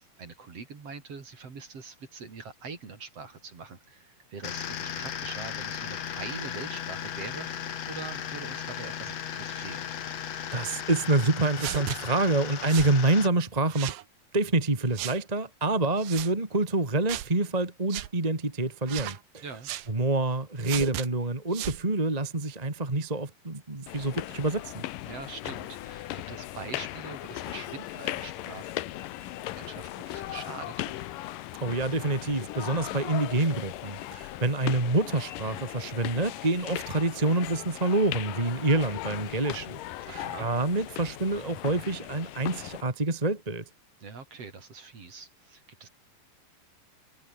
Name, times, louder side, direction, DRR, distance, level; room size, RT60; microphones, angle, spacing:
voice 1, 0.0-9.9 19.4-19.7 25.0-28.7 29.6-30.9 40.0-40.5 44.0-45.9, right 4 dB, 45° right, 4.4 m, -43 dB
sound 1, 4.4-13.3, left 9 dB, 55° left, 2.5 m, -36 dB
voice 2, 10.5-13.9 14.3-19.4 19.9-24.9 31.6-39.8 40.1-43.6, right 2 dB, 15° right, 2.1 m, -27 dB
sound 2, 11.6-12.0 12.7-13.0 13.7-14.0 15.0-15.2 16.0-16.3 17.1-17.3 17.9-18.1 18.9-19.2 19.6-19.9 20.6-21.1 21.5-21.8, right 14 dB, 90° right, 3.0 m, -35 dB
sound 3, 23.9-42.8, left 15 dB, 75° left, 2.6 m, -38 dB
omnidirectional pair, 4.0 m